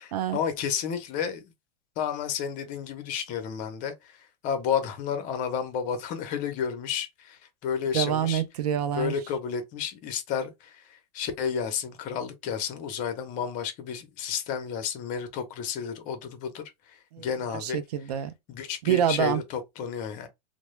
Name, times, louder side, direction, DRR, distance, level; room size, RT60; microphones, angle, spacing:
voice 1, 0.0-1.4 2.0-8.4 8.9-17.8 18.5-20.3, left 7 dB, 40° left, 0.6 m, -31 dB
voice 2, 7.9-9.1 17.1-17.3 17.5-18.3 18.9-19.4, right 10 dB, 75° right, 0.5 m, -26 dB
2.2 x 2.0 x 3.0 m
hypercardioid pair, 125°, 20 cm